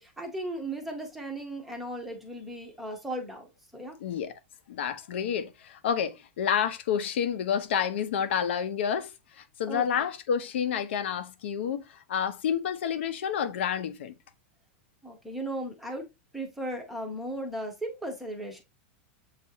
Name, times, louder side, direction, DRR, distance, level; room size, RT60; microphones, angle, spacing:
voice 1, 0.0-3.5 3.7-4.0 9.7-9.9 15.0-16.1 16.3-18.6, right 1 dB, ahead, 0.6 m, -36 dB
voice 2, 4.0-4.3 4.7-9.1 9.4-14.1, left 8 dB, 70° left, 0.6 m, -29 dB
7.1 x 2.4 x 2.7 m
supercardioid pair, 180°, 6 cm